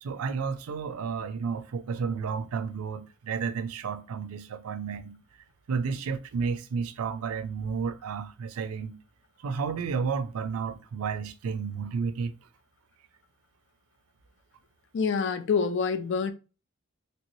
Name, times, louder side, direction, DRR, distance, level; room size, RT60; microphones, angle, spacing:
voice 1, 0.0-5.2 5.7-9.0 9.4-12.3, right 5 dB, 90° right, 0.4 m, -32 dB
voice 2, 14.9-16.3, left 5 dB, 55° left, 0.4 m, -26 dB
3.2 x 3.0 x 2.6 m
head